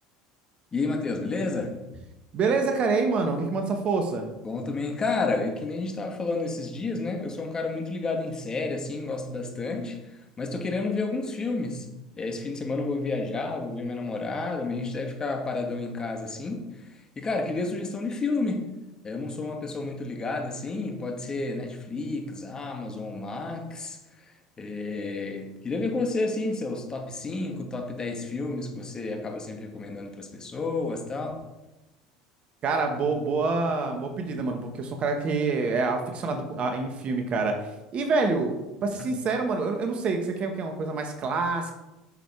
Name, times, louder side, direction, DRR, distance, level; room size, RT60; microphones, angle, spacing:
voice 1, 0.7-1.7 4.4-11.9 12.2-18.7 19.0-31.4, left 3 dB, 25° left, 3 dB, 2.1 m, -31 dB
voice 2, 2.3-4.3 32.6-37.6 37.9-38.5 38.8-41.7, right 4 dB, 45° right, 5 dB, 1.8 m, -26 dB
9.3 x 7.0 x 4.9 m, 1.0 s
hypercardioid pair, 75°, 3 cm